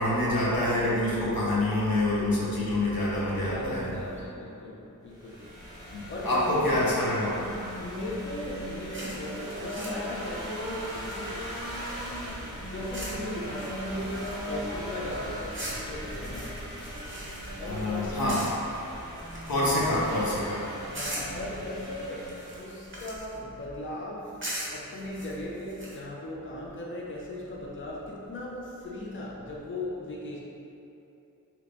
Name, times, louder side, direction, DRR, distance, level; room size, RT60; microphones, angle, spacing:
voice 1, 0.0-3.9 5.9-7.3 17.6-18.4 19.5-20.6, left 1 dB, 85° left, -7 dB, 0.8 m, -26 dB
voice 2, 3.5-5.5 6.1-6.9 7.8-11.4 12.5-16.7 17.1-17.2 17.6-18.4 19.7-20.0 20.9-22.3 22.6-24.4 24.7-30.4, left 1 dB, 35° left, -4 dB, 0.5 m, -37 dB
sound 1, 5.1-23.0, equal, 10° left, 0.9 m, -39 dB
Digging sand with a shovel, 8.9-12.1 12.9-13.2 13.5-14.7 15.5-17.9 18.3-18.8 19.1-20.2 20.9-21.5 22.2-23.4 24.4-26.0, right 1 dB, 35° right, 0.7 m, -41 dB
2.9 x 2.5 x 3.4 m, 2.8 s
wide cardioid pair, 50°, 34 cm